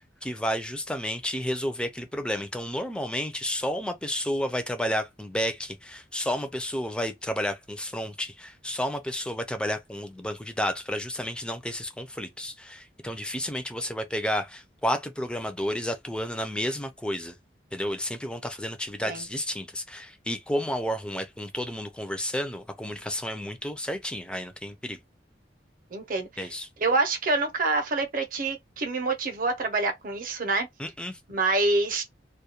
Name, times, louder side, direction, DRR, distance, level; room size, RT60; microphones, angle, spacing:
voice 1, 0.2-17.3 17.7-25.0 26.4-26.7 30.8-31.2, equal, 5° left, 0.3 m, -31 dB
voice 2, 25.9-26.5 26.8-30.7 31.3-32.0, right 3 dB, 50° right, 0.6 m, -26 dB
2.3 x 2.1 x 2.8 m
head